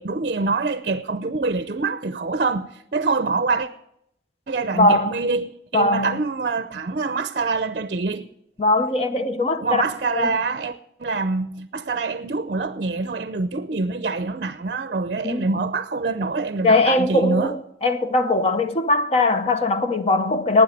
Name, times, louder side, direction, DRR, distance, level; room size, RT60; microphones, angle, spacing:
voice 1, 0.0-3.7 4.5-8.3 9.6-17.5, right 3 dB, 50° right, 0.6 m, -25 dB
voice 2, 4.7-5.1 5.7-6.2 8.6-9.8 10.1-10.4 15.2-15.4 16.6-20.6, left 2 dB, 35° left, 0.8 m, -20 dB
12.5 x 9.3 x 9.2 m
head